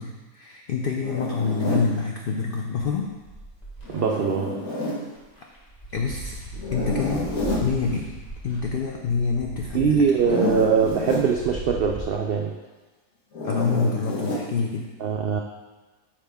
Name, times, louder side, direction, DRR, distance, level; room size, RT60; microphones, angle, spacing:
voice 1, 0.0-3.1 5.9-7.3 7.6-8.1 8.4-10.0 13.4-14.9, left 5 dB, 65° left, 0 dB, 0.5 m, -27 dB
Zipper (clothing), 1.0-1.9 3.8-5.0 6.6-7.7 10.1-11.3 13.3-14.5, left 2 dB, 80° left, 1.8 m, -28 dB
sound 1, 3.2-4.0 4.7-4.8 5.2-12.0, right 2 dB, 30° left, 1.5 m, -38 dB
voice 2, 3.9-4.6 9.7-12.5 15.0-15.4, right 6 dB, 80° right, 1 dB, 0.5 m, -22 dB
7.4 x 4.6 x 3.5 m, 1.2 s
omnidirectional pair, 1.5 m